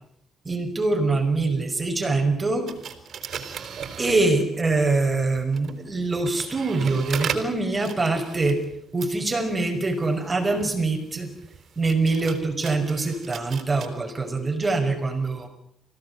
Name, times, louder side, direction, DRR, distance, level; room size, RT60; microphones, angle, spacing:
voice 1, 0.5-2.7 4.0-8.6 8.9-11.3 11.8-15.6, right 3 dB, 25° right, 8 dB, 5.7 m, -24 dB
sound 1, 2.7-4.7 5.4-13.9, right 7 dB, 60° right, 4.4 m, -38 dB
28.5 x 17.0 x 9.8 m, 0.73 s
cardioid pair, 90°, 0 cm